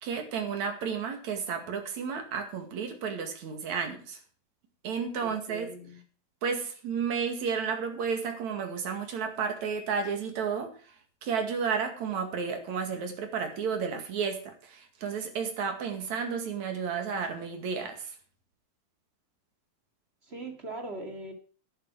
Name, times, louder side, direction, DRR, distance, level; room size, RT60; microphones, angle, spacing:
voice 1, 0.0-4.2 4.8-5.7 6.4-10.7 11.2-18.1, right 6 dB, 55° right, 3.2 m, -32 dB
voice 2, 5.2-6.0 20.2-21.3, right 2 dB, 25° right, 1.5 m, -40 dB
11.5 x 11.0 x 4.9 m
omnidirectional pair, 4.3 m